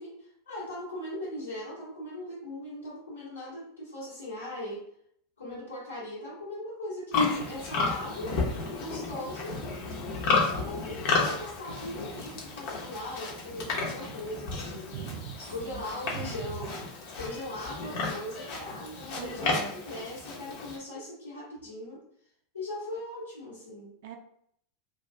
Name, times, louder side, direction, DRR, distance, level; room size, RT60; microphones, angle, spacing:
voice 1, 0.0-4.8 5.4-8.3 8.8-9.6 10.5-15.1 15.4-16.7 17.1-22.0 22.5-23.9, left 1 dB, 90° left, -12 dB, 1.5 m, -39 dB
Livestock farm animals working animals, 7.1-20.8, left 3 dB, 55° left, 0.9 m, -32 dB
voice 2, 14.9-15.8 16.1-16.6 19.1-19.8 24.0-24.2, right 8 dB, 60° right, 5 dB, 0.4 m, -40 dB
2.8 x 2.4 x 3.3 m, 0.69 s
figure-of-eight pair, 90°, 0 cm